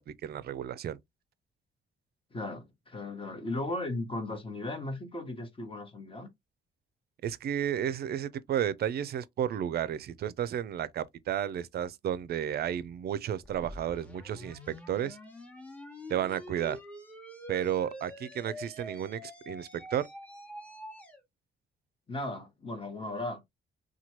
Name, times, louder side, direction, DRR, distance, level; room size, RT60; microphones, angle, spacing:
voice 1, 0.1-1.0 7.2-15.2 16.1-16.8 17.5-20.1, right 10 dB, 55° right, 0.4 m, -32 dB
voice 2, 2.3-6.3 22.1-23.4, left 2 dB, 25° left, 1.0 m, -36 dB
sound 1, 13.4-21.2, left 1 dB, 5° left, 1.0 m, -46 dB
2.9 x 2.2 x 2.8 m
cardioid pair, 90°, 20 cm